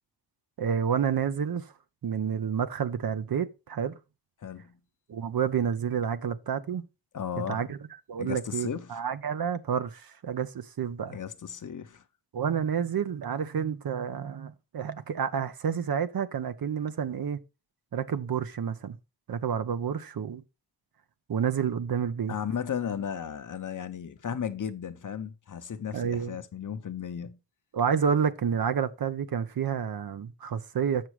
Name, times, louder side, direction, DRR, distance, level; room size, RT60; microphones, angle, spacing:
voice 1, 0.6-1.7 2.0-4.0 5.1-6.9 7.5-7.8 8.1-11.2 12.3-17.4 17.9-19.0 19.3-20.4 21.3-22.3 25.9-26.4 27.7-31.1, right 7 dB, 55° right, 0.8 m, -29 dB
voice 2, 4.4-4.8 7.1-7.6 8.2-9.0 11.1-12.0 22.3-27.4, left 8 dB, 45° left, 0.8 m, -35 dB
7.6 x 6.1 x 4.8 m
wide cardioid pair, 145°, 42 cm